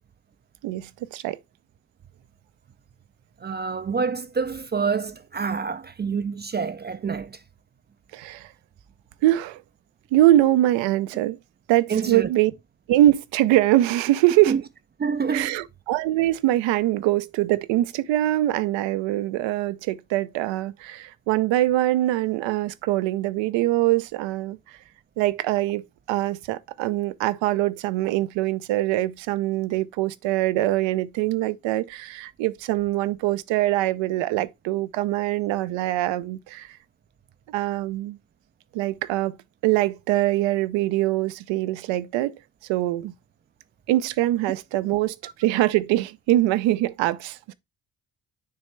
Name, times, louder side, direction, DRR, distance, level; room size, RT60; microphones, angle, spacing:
voice 1, 0.6-1.4 8.1-8.5 9.2-9.6 10.1-11.4 11.7-12.5 12.9-14.5 15.3-24.8 25.2-36.8 37.5-38.2 38.7-39.4 39.6-42.3 42.7-43.1 43.9-47.5, right 15 dB, 75° right, 0.6 m, -23 dB
voice 2, 3.4-7.4 11.9-12.3 14.5-14.6 15.0-15.6, right 5 dB, 25° right, 0.4 m, -27 dB
9.5 x 3.2 x 3.2 m
supercardioid pair, 60°, 45 cm